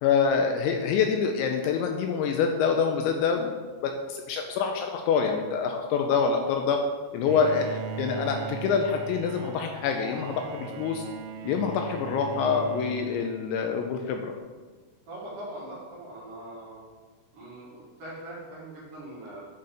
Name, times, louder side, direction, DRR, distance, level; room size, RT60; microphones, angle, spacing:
voice 1, 0.0-6.8 7.1-11.0 11.4-14.3, left 6 dB, 85° left, 4 dB, 2.8 m, -26 dB
Bowed string instrument, 7.3-14.0, right 6 dB, 85° right, 2.9 m, -39 dB
voice 2, 15.1-16.8 17.3-19.4, right 1 dB, 50° right, -7 dB, 3.0 m, -41 dB
10.5 x 4.3 x 5.0 m, 1.4 s
omnidirectional pair, 5.6 m